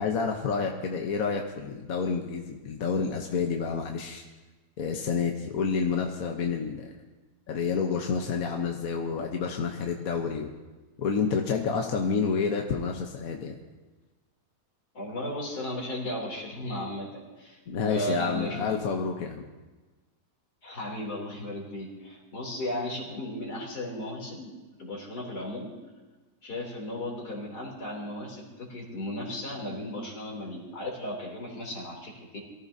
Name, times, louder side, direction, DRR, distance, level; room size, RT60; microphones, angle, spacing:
voice 1, 0.0-4.2 4.8-6.9 7.5-10.5 11.0-13.6 17.7-19.4, left 5 dB, 65° left, 2 dB, 1.4 m, -29 dB
voice 2, 14.9-17.6 17.9-18.7 20.6-24.5 24.8-25.7 26.4-32.4, left 1 dB, 85° left, -2 dB, 3.8 m, -35 dB
23.0 x 14.5 x 2.8 m, 1.2 s
omnidirectional pair, 1.7 m